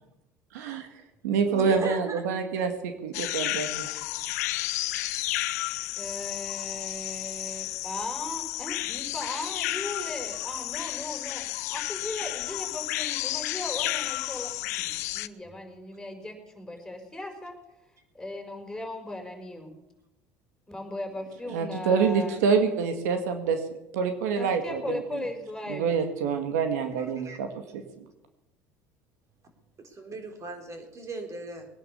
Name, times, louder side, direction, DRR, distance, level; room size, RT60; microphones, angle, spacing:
voice 1, 0.5-0.9 1.2-3.9 21.5-23.6 23.9-25.0 25.7-27.5 27.7-27.8, right 5 dB, 85° right, 7 dB, 2.0 m, -26 dB
voice 2, 1.5-2.2 27.0-27.4 29.8-31.7, right 3 dB, 35° right, 5 dB, 4.1 m, -38 dB
sound 1, 3.1-15.3, left 17 dB, 90° left, 0.6 m, -32 dB
voice 3, 6.0-17.6 18.1-19.7 20.7-22.4 24.3-25.9, left 1 dB, 5° left, 3 dB, 5.3 m, -38 dB
20.5 x 10.0 x 7.0 m, 0.95 s
supercardioid pair, 85°, 8 cm